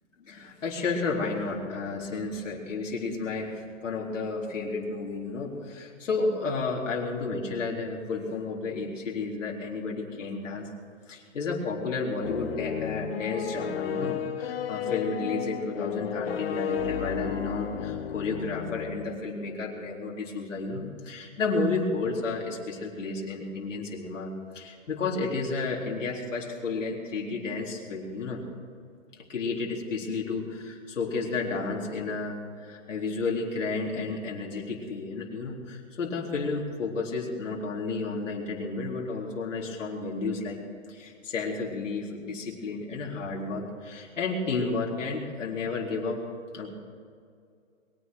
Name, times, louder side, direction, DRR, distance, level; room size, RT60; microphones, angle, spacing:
voice 1, 0.2-10.7 11.1-28.4 29.3-40.6 40.9-46.2 46.5-46.7, left 3 dB, 70° left, -2 dB, 4.1 m, -32 dB
sound 1, 12.2-19.2, left 8 dB, 50° left, 1.1 m, -33 dB
22.0 x 9.9 x 6.5 m, 2.3 s
hypercardioid pair, 155°, 39 cm